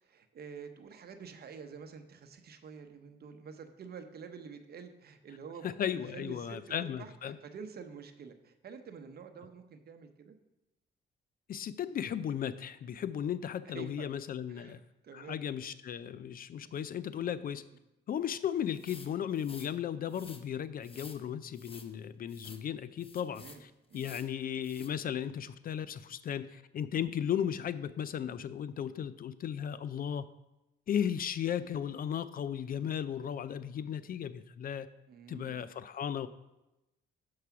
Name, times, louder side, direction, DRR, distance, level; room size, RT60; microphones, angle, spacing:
voice 1, 0.0-6.6 7.0-10.4 13.6-14.1 14.5-15.4 16.6-17.0 23.3-23.6 23.9-24.1 28.8-29.0 35.1-35.6, right 6 dB, 50° right, 7 dB, 0.8 m, -48 dB
voice 2, 5.6-7.4 11.5-14.8 15.1-17.6 18.1-23.7 23.9-30.3 30.9-34.9 35.3-36.3, left 9 dB, 45° left, 15 dB, 0.4 m, -35 dB
sound 1, 18.7-19.7 20.1-20.4 20.8-21.2 21.5-21.9 22.3-22.6 23.0-23.6 23.9-24.3 24.6-24.9, left 4 dB, 30° left, 0.8 m, -51 dB
6.7 x 4.8 x 5.9 m, 0.95 s
cardioid pair, 90°, 20 cm